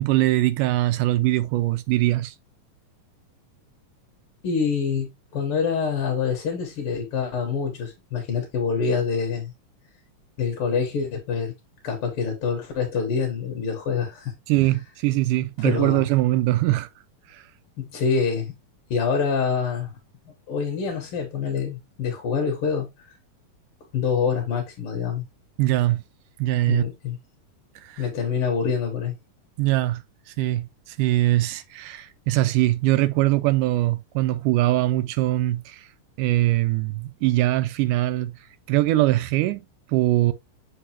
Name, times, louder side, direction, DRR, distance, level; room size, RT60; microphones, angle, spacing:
voice 1, 0.0-2.3 14.5-16.9 17.3-17.4 25.6-26.0 26.4-26.8 27.8-28.0 29.6-30.0 30.4-35.9 36.2-38.3 38.7-40.3, right 16 dB, 80° right, 2.1 m, -22 dB
voice 2, 4.4-9.5 10.4-11.5 11.8-14.3 15.6-16.0 17.8-18.5 18.9-19.9 20.2-23.1 23.9-25.2 26.7-27.2 28.0-29.1, left 6 dB, 60° left, 1.6 m, -26 dB
6.7 x 4.9 x 2.8 m
omnidirectional pair, 3.8 m